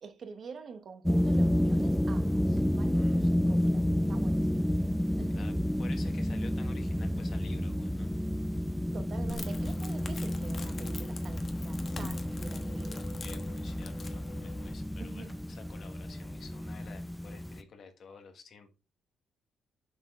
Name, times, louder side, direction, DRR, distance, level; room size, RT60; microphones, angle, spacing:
voice 1, 0.0-4.7 5.2-5.4 8.9-13.1 15.0-15.4, right 5 dB, 55° right, 1.0 m, -47 dB
sound 1, 1.0-17.6, equal, 5° left, 0.6 m, -30 dB
voice 2, 2.9-3.4 5.3-5.5 5.8-8.1 13.2-18.7, left 6 dB, 60° left, 1.4 m, -51 dB
Crackle, 9.3-14.7, left 4 dB, 40° left, 1.1 m, -45 dB
7.0 x 4.5 x 3.6 m
cardioid pair, 90°, 0 cm